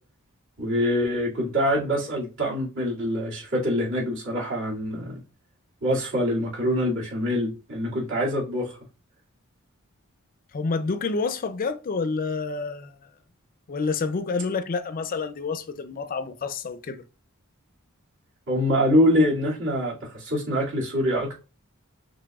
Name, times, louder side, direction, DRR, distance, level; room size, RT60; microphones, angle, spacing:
voice 1, 0.6-5.2 5.8-8.7 18.5-21.4, equal, 65° right, 2.2 m, -24 dB
voice 2, 10.5-12.9 13.7-17.0, left 4 dB, 40° left, 0.4 m, -28 dB
6.0 x 3.2 x 2.3 m
head